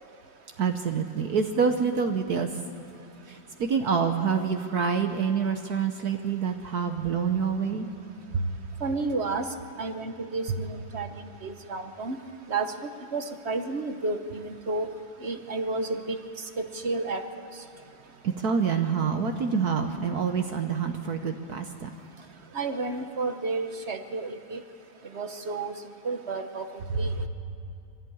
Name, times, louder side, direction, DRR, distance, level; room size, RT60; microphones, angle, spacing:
voice 1, 0.6-2.6 3.3-7.9 8.3-8.5 18.2-21.9, right 6 dB, 60° right, 6 dB, 1.4 m, -27 dB
voice 2, 8.8-9.5 9.8-12.2 12.5-12.7 13.1-14.9 15.2-16.2 16.6-17.2 22.5-24.6 25.1-25.7 26.0-26.6 27.0-27.1, right 3 dB, 40° right, 7 dB, 1.1 m, -31 dB
24.0 x 15.5 x 8.6 m, 2.7 s
omnidirectional pair, 2.0 m